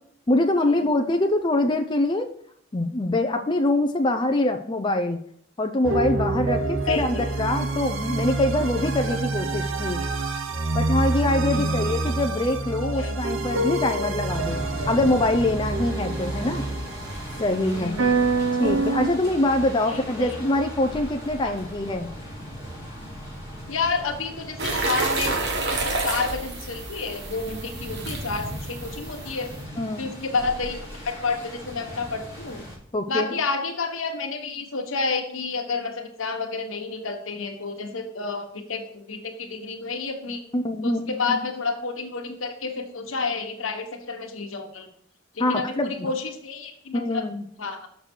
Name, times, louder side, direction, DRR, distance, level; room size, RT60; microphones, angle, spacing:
voice 1, 0.3-2.3 2.7-5.2 5.6-10.0 10.7-16.6 17.4-18.0 18.6-22.1 29.8-30.1 32.9-33.3 40.5-41.4 45.4-46.1 46.9-47.4, left 1 dB, 25° left, 5 dB, 0.5 m, -24 dB
sound 1, 5.8-19.1, right 3 dB, 80° right, 0.8 m, -27 dB
voice 2, 6.9-7.2 11.5-11.7 12.8-13.2 17.7-18.2 19.9-20.4 21.4-21.6 23.7-25.4 25.7-29.5 30.0-30.8 31.0-32.6 33.1-40.4 40.8-44.9 45.4-47.2 47.6-47.9, left 4 dB, 80° left, 4 dB, 1.3 m, -30 dB
sound 2, 14.3-32.8, equal, 20° right, 3.2 m, -38 dB
sound 3, 24.6-29.6, right 3 dB, 55° right, 1.2 m, -30 dB
6.7 x 6.5 x 4.5 m, 0.67 s
head